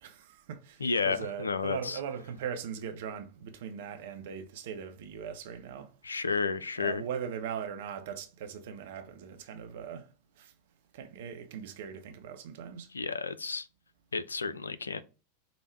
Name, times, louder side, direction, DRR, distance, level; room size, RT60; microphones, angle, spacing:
voice 1, 0.0-5.9 6.8-10.1 10.4-10.5 10.9-12.9, right 7 dB, 55° right, 0.6 m, -40 dB
voice 2, 0.8-2.0 6.0-7.0 12.9-13.7 14.1-15.0, left 4 dB, 75° left, 0.3 m, -31 dB
5.0 x 2.0 x 4.4 m
figure-of-eight pair, 90°, 0 cm